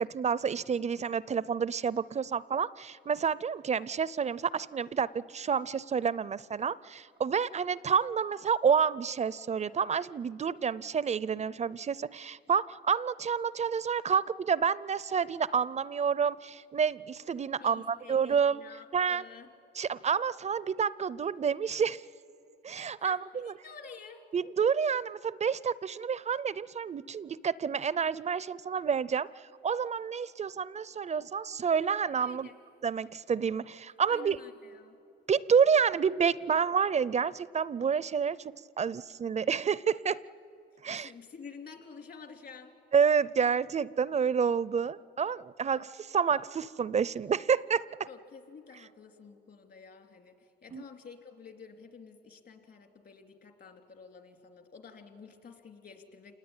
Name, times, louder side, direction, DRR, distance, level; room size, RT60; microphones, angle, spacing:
voice 1, 0.0-18.6 18.9-19.2 19.8-22.0 22.6-23.5 24.3-29.3 29.6-32.5 32.8-34.4 35.3-40.2 40.8-41.1 42.9-47.8 50.7-50.8, right 6 dB, 35° right, 20 dB, 0.5 m, -29 dB
voice 2, 17.6-19.5 23.0-24.2 32.2-32.6 34.1-34.9 40.9-42.7 48.1-56.3, left 5 dB, 55° left, 5 dB, 3.0 m, -50 dB
27.5 x 19.5 x 8.9 m, 3.0 s
cardioid pair, 90°, 20 cm